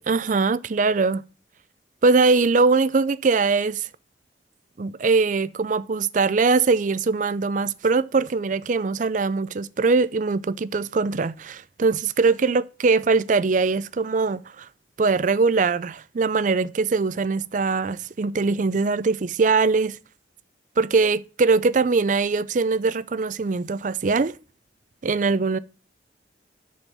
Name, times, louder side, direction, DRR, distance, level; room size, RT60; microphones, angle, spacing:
voice 1, 0.1-1.2 2.0-3.9 4.8-14.7 15.0-20.0 20.8-24.4 25.0-25.6, right 4 dB, 45° right, 0.4 m, -22 dB
10.5 x 4.4 x 6.8 m
head